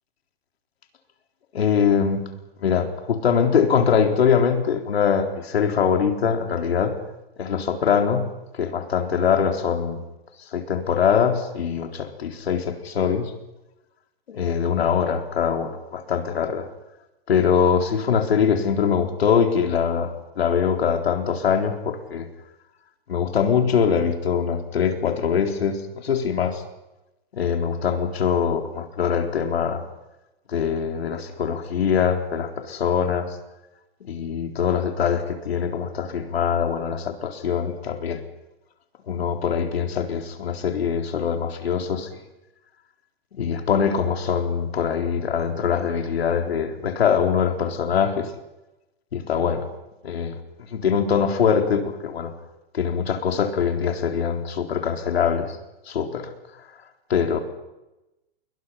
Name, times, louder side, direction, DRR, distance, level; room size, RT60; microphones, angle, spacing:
voice 1, 1.5-2.2 2.6-6.9 7.4-8.3 8.5-10.0 10.5-13.3 14.3-16.7 17.3-22.3 23.1-26.6 27.3-29.8 30.5-33.4 34.1-38.2 39.1-42.1 43.3-48.3 49.1-49.7 50.0-52.3 52.7-55.6 55.9-56.3 57.1-57.4, left 7 dB, 90° left, 4 dB, 4.1 m, -23 dB
30.0 x 22.0 x 5.8 m, 0.97 s
hypercardioid pair, 165°, 30 cm